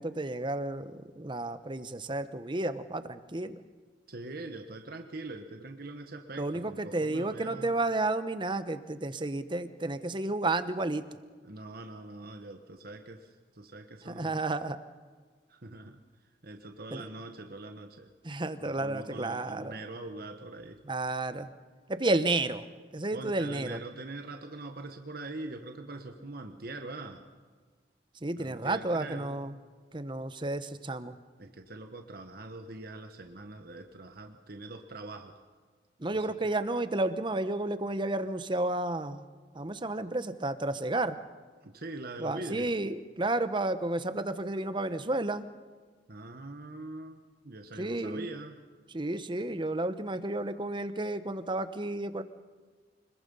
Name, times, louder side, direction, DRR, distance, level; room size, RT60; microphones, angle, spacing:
voice 1, 0.0-3.6 6.4-11.0 14.1-14.8 16.9-17.0 18.2-19.8 20.8-21.5 21.9-22.7 22.9-23.8 28.2-29.6 29.9-31.2 36.0-39.2 39.5-41.2 42.2-45.5 47.8-48.3 48.9-52.2, right 2 dB, 25° right, 11 dB, 0.9 m, -32 dB
voice 2, 4.1-7.7 11.4-14.4 15.5-16.0 16.4-18.1 18.6-20.8 23.1-27.2 28.4-29.4 31.4-35.4 36.1-36.4 41.6-42.7 46.1-48.6, right 2 dB, 55° right, 5 dB, 1.3 m, -43 dB
25.0 x 21.0 x 5.5 m, 1.5 s
head